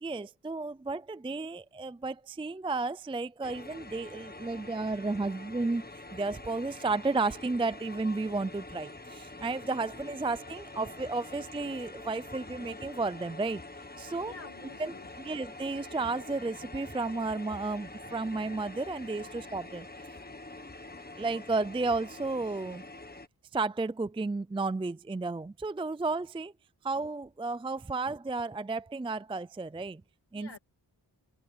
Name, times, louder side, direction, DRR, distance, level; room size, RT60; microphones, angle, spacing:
voice 1, 0.0-13.6 14.0-14.3 14.8-14.9 15.2-19.9 21.2-22.8 23.5-26.5 26.8-30.0 30.3-30.6, right 3 dB, 10° right, 0.4 m, -33 dB
sound 1, 3.4-23.3, left 2 dB, 20° left, 1.5 m, -46 dB
voice 2, 14.2-15.4 30.3-30.6, left 5 dB, 60° left, 2.3 m, -50 dB
open air
wide cardioid pair, 110°, 44 cm